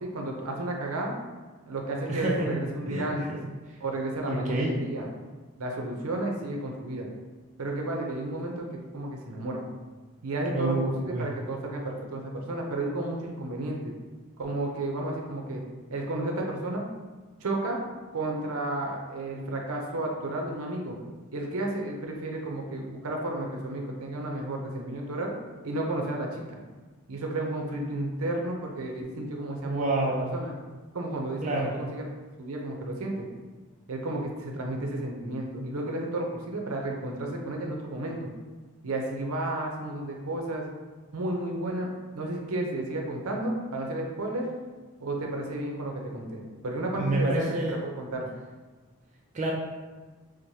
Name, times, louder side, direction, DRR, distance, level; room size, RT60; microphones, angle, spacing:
voice 1, 0.0-1.1 1.7-3.4 3.8-5.1 5.6-7.1 7.6-9.6 10.2-13.9 14.4-15.6 15.9-16.9 17.4-17.8 18.1-21.0 21.3-25.3 25.6-26.6 27.1-29.8 30.3-30.5 30.9-32.1 32.4-33.3 33.9-38.3 38.8-40.7 41.1-41.9 42.1-44.5 45.0-48.3, right 1 dB, 80° right, 1 dB, 0.6 m, -32 dB
voice 2, 2.1-2.6 2.9-3.4 4.2-4.7 10.5-11.3 29.6-30.3 31.4-31.7 46.9-47.7 49.3-49.5, right 2 dB, 35° right, -2 dB, 0.3 m, -28 dB
4.6 x 2.1 x 2.7 m, 1.3 s
head